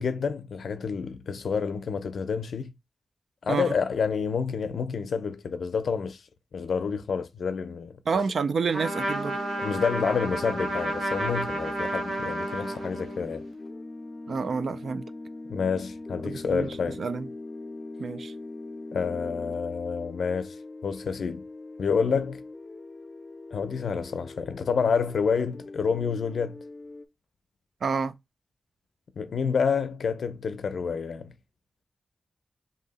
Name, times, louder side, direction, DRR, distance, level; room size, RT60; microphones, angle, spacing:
voice 1, 0.0-2.7 3.4-6.2 6.5-7.9 9.6-13.4 15.5-17.0 18.9-20.6 20.8-21.4 21.8-22.4 23.5-26.6 29.2-31.3, left 6 dB, 85° left, 0.5 m, -28 dB
voice 2, 8.1-9.4 14.3-15.1 16.2-17.3 18.0-18.3 27.8-28.1, right 5 dB, 75° right, 0.3 m, -29 dB
Trumpet, 8.7-13.3, right 1 dB, 90° right, 1.0 m, -31 dB
sound 1, 8.8-27.0, left 2 dB, 25° left, 0.3 m, -41 dB
2.7 x 2.7 x 3.9 m
wide cardioid pair, 140°, 0 cm